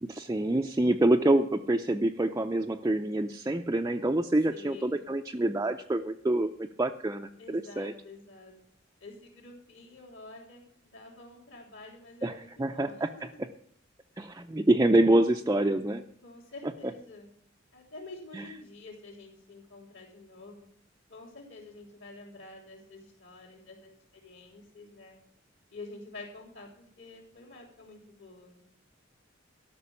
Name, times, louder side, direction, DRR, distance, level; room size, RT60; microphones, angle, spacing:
voice 1, 0.0-7.9 12.2-13.1 14.2-16.0 18.3-18.5, right 1 dB, 15° right, 4 dB, 0.4 m, -26 dB
voice 2, 4.5-5.0 7.4-8.5 9.0-13.1 16.2-17.3 17.7-20.7 21.1-25.2 25.7-28.6, left 2 dB, 65° left, -7 dB, 3.9 m, -48 dB
13.0 x 6.1 x 9.7 m, 0.62 s
head